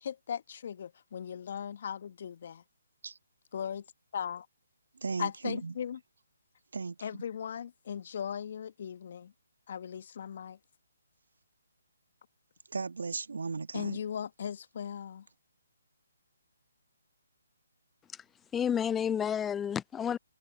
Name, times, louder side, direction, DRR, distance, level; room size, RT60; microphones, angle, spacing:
voice 1, 0.0-2.6 3.5-3.8 4.1-4.5 5.2-6.0 7.0-9.3 9.7-10.6 13.7-15.2, left 8 dB, 50° left, 1.2 m, -38 dB
voice 2, 5.0-5.8 6.7-7.2 12.7-14.0, right 4 dB, 70° right, 1.6 m, -36 dB
voice 3, 18.5-20.2, left 8 dB, 10° left, 0.4 m, -30 dB
figure-of-eight pair, 145°, 0 cm